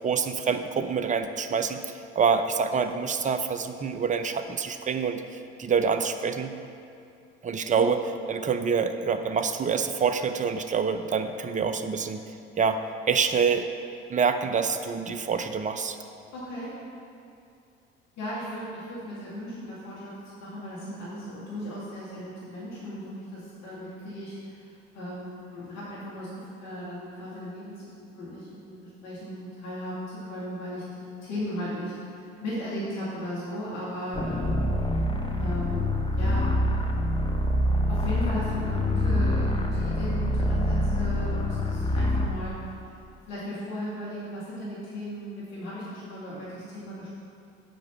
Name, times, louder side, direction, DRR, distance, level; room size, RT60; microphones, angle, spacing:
voice 1, 0.0-1.8 2.1-5.2 5.6-6.5 7.4-8.0 8.3-12.2 12.6-12.8 13.1-13.7 14.1-16.0, right 6 dB, 25° right, 9 dB, 0.6 m, -26 dB
voice 2, 16.3-16.7 18.2-34.6 35.4-35.9 36.2-36.7 37.9-42.5 43.3-47.1, equal, 60° left, -8 dB, 2.3 m, -36 dB
sound 1, 34.1-42.4, left 1 dB, 15° left, 0.9 m, -26 dB
7.8 x 4.9 x 7.2 m, 2.5 s
hypercardioid pair, 60°, 31 cm